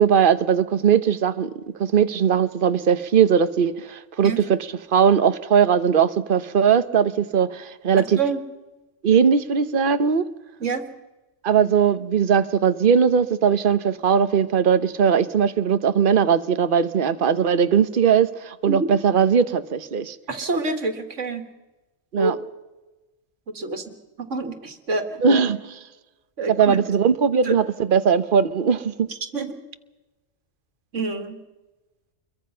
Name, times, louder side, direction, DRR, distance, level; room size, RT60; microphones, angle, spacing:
voice 1, 0.0-1.5 1.8-8.2 9.0-10.2 11.4-20.2 22.1-22.4 25.2-25.6 26.5-29.1 29.3-29.5, right 7 dB, 50° right, 12 dB, 1.1 m, -19 dB
voice 2, 7.9-8.4 10.6-10.9 18.7-18.9 20.3-21.4 22.2-22.3 23.5-25.4 26.4-26.8 27.5-27.6 29.3-29.6 30.9-31.4, right 3 dB, 85° right, 7 dB, 2.2 m, -27 dB
27.0 x 22.5 x 5.6 m, 1.1 s
omnidirectional pair, 1.2 m